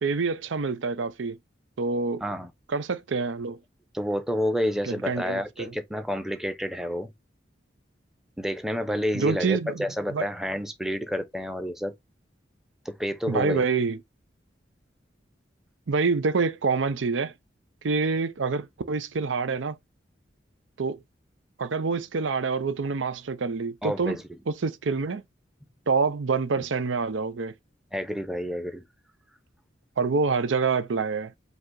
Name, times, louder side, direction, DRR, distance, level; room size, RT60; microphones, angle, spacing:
voice 1, 0.0-1.4 1.8-2.2 2.7-3.6 4.8-5.7 9.1-10.3 13.3-14.0 15.9-17.3 17.8-19.8 20.8-21.0 21.6-24.2 24.5-25.2 25.9-27.5 30.0-31.3, right 4 dB, 90° right, 0.6 m, -26 dB
voice 2, 2.2-2.5 3.9-7.1 8.4-11.9 12.9-13.6 23.8-24.2 27.9-28.8, equal, ahead, 0.7 m, -29 dB
5.3 x 2.0 x 3.8 m
head